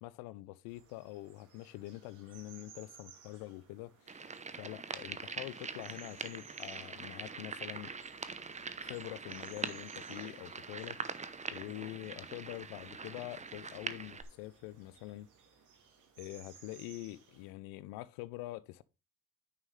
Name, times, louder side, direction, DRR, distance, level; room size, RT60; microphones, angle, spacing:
voice 1, 0.0-7.9 8.8-15.3 16.2-18.8, left 17 dB, 80° left, 0.6 m, -45 dB
sound 1, 0.7-17.5, right 6 dB, 60° right, 2.9 m, -61 dB
sound 2, 4.1-14.2, right 4 dB, 20° right, 0.9 m, -43 dB
9.6 x 5.6 x 3.3 m
supercardioid pair, 85°, 34 cm